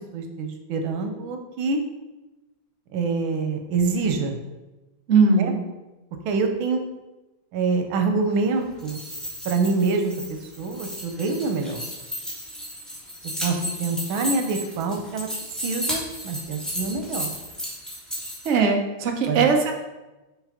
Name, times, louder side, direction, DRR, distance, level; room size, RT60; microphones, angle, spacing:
voice 1, 0.1-1.8 2.9-4.4 5.4-5.5 6.2-6.8 7.5-9.0 9.4-11.8 13.4-15.3 15.6-17.3 19.3-19.5, right 4 dB, 85° right, 5 dB, 1.7 m, -26 dB
voice 2, 5.1-5.6 18.4-19.7, right 4 dB, 50° right, 3 dB, 0.8 m, -19 dB
sound 1, 8.7-18.5, equal, ahead, 1.9 m, -33 dB
6.5 x 3.9 x 5.0 m, 1.1 s
omnidirectional pair, 2.1 m